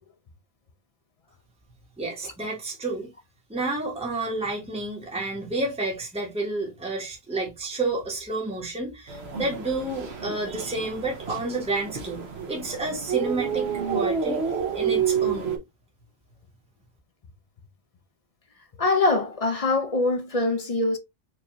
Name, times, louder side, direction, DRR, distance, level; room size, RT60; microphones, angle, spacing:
voice 1, 2.0-3.1 3.5-15.6, right 2 dB, 5° right, 1.1 m, -30 dB
sound 1, 9.1-15.6, right 7 dB, 65° right, 1.1 m, -29 dB
voice 2, 18.8-21.0, left 3 dB, 45° left, 0.5 m, -23 dB
4.6 x 2.6 x 2.9 m
omnidirectional pair, 1.2 m